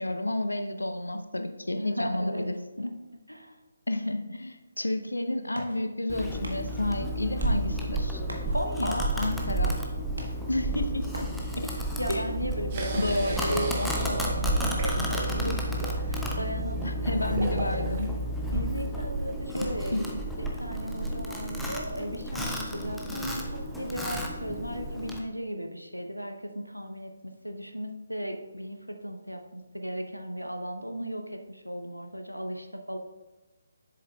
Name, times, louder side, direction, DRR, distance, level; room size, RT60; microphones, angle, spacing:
voice 1, 0.0-2.9 3.9-8.2 8.8-9.8 10.5-11.3 12.1-12.3 13.0-13.9 16.8-18.1 19.5-20.0, left 1 dB, 75° left, 8 dB, 0.6 m, -31 dB
voice 2, 1.7-2.5 2.8-2.9 3.3-3.6 8.5-9.0 11.4-17.0 18.5-33.0, equal, 90° right, 5 dB, 0.8 m, -36 dB
sound 1, 4.8-16.3, right 1 dB, 65° right, 1.1 m, -47 dB
Domestic sounds home sounds, 6.1-25.2, right 1 dB, ahead, 0.6 m, -31 dB
sound 2, 12.7-18.1, right 2 dB, 30° right, 0.9 m, -36 dB
7.4 x 6.9 x 2.3 m, 1.1 s
figure-of-eight pair, 145°, 0 cm